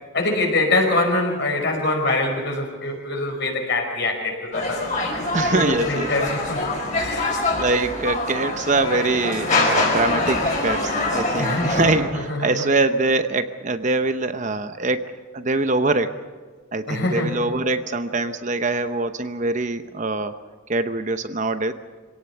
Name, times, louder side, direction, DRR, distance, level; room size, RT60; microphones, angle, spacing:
voice 1, 0.1-4.8 5.5-6.6 6.9-7.5 11.4-12.7 16.9-17.3, left 2 dB, 55° left, 2 dB, 5.2 m, -24 dB
sound 1, 4.5-12.0, left 2 dB, 35° left, 5.2 m, -24 dB
voice 2, 5.3-6.1 7.5-15.0 15.3-16.2 16.7-20.3 20.7-21.7, right 3 dB, 35° right, 9 dB, 0.8 m, -23 dB
25.5 x 18.0 x 7.0 m, 1.4 s
head